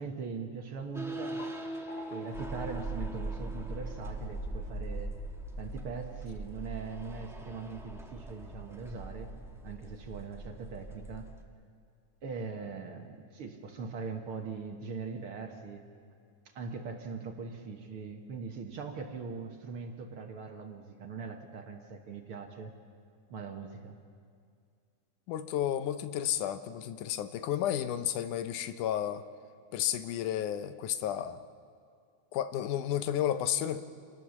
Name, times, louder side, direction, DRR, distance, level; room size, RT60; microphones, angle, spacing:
voice 1, 0.0-1.5 2.1-5.1 5.6-9.3 9.6-11.3 12.2-15.8 16.5-22.7 23.3-24.0, right 5 dB, 55° right, 4 dB, 1.9 m, -41 dB
sound 1, 0.8-4.1, left 1 dB, 65° left, 4.0 m, -52 dB
sound 2, 0.9-11.4, right 2 dB, 5° right, 0.5 m, -40 dB
voice 2, 25.3-29.2 29.7-31.4 32.3-33.8, left 11 dB, 85° left, 11 dB, 2.3 m, -32 dB
27.5 x 19.5 x 7.2 m, 2.3 s
omnidirectional pair, 3.5 m